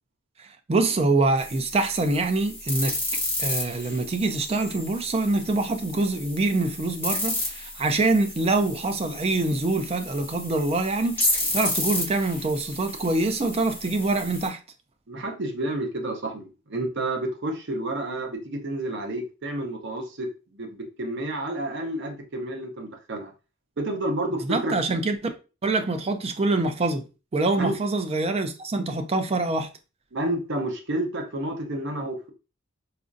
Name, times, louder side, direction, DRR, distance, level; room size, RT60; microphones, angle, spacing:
voice 1, 0.4-3.0 3.4-14.6 24.5-25.2 25.6-27.0 27.3-29.7, right 2 dB, 30° right, 0.4 m, -25 dB
sound 1, 1.4-14.5, left 1 dB, 10° left, 1.2 m, -32 dB
voice 2, 15.1-23.3 23.8-24.8 27.6-27.7 30.1-32.3, right 1 dB, 60° right, 0.7 m, -30 dB
4.1 x 2.4 x 2.5 m
head